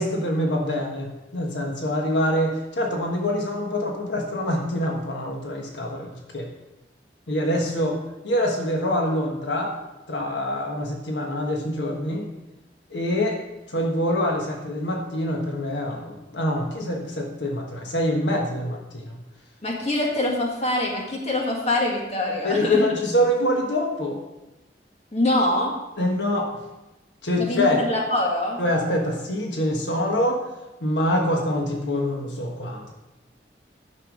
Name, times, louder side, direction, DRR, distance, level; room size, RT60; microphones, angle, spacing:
voice 1, 0.0-6.1 6.3-6.5 7.3-8.0 8.2-9.7 10.1-12.3 12.9-13.4 13.7-19.2 22.4-24.2 26.0-26.6 27.2-27.8 28.6-30.4 30.8-32.9, left 1 dB, 85° left, 1 dB, 1.4 m, -25 dB
voice 2, 19.6-22.9 25.1-25.7 27.4-28.6, left 1 dB, 35° left, -1 dB, 1.9 m, -24 dB
10.0 x 6.7 x 5.1 m, 0.99 s
head